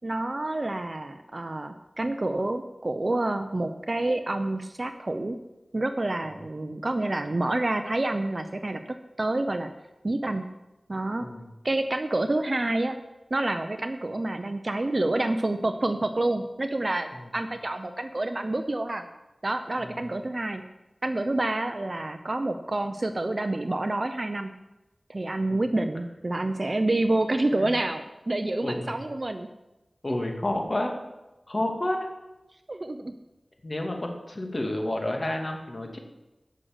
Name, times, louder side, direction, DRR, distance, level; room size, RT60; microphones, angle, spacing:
voice 1, 0.0-5.4 5.7-8.8 9.2-9.7 10.0-10.4 10.9-11.3 11.6-13.0 13.3-19.0 19.4-20.6 21.0-24.5 25.1-29.5 32.7-33.1, right 2 dB, 45° right, 8 dB, 0.8 m, -28 dB
voice 2, 28.6-28.9 30.0-30.9 31.5-32.1 33.6-36.0, left 1 dB, 45° left, 2 dB, 2.4 m, -30 dB
13.0 x 6.5 x 7.9 m, 1.0 s
wide cardioid pair, 55°, 0 cm